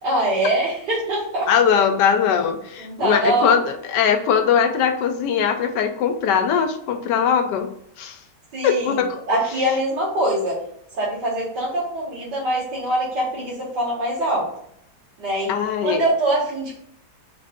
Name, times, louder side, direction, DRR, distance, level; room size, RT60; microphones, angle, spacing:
voice 1, 0.0-1.5 2.8-3.5 8.5-9.0 9.3-10.6 11.0-14.5 15.2-15.5 15.8-16.8, right 1 dB, 80° right, -7 dB, 2.1 m, -23 dB
voice 2, 1.5-7.7 8.0-8.2 8.6-9.2 15.5-16.0, left 7 dB, 85° left, 6 dB, 1.3 m, -20 dB
4.1 x 2.5 x 4.2 m, 0.72 s
omnidirectional pair, 1.8 m